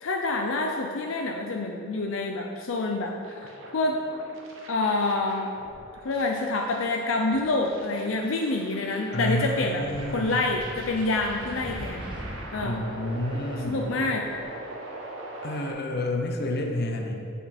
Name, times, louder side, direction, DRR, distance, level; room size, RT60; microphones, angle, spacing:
voice 1, 0.0-4.0 4.7-5.5 6.0-9.8 10.1-12.0 12.5-12.8 13.7-14.3, left 2 dB, 75° left, 2 dB, 0.5 m, -27 dB
sound 1, 3.2-15.7, right 2 dB, 75° right, 1.0 m, -42 dB
voice 2, 9.1-10.4 12.6-13.8 15.4-17.1, left 1 dB, 50° left, 3 dB, 0.8 m, -29 dB
Wind, 9.2-14.4, right 1 dB, 25° right, 0.7 m, -42 dB
8.5 x 5.4 x 4.2 m, 2.6 s
head